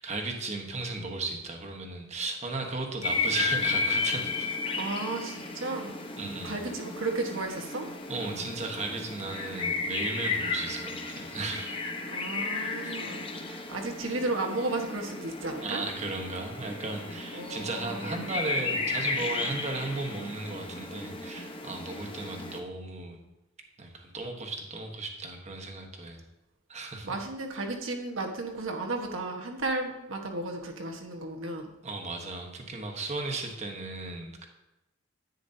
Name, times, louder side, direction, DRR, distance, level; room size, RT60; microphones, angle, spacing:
voice 1, 0.0-4.5 6.2-6.6 8.1-11.7 12.8-13.0 15.6-23.2 23.8-26.2 26.7-27.2 31.8-34.5, right 3 dB, 35° right, 2 dB, 1.2 m, -35 dB
sound 1, 3.0-22.6, left 4 dB, 25° left, 0.9 m, -34 dB
voice 2, 4.8-5.9 6.4-7.9 12.1-15.8 16.6-16.7 17.3-18.2 27.0-31.7, right 2 dB, 80° right, 2 dB, 1.3 m, -34 dB
10.5 x 9.3 x 2.8 m, 0.96 s
head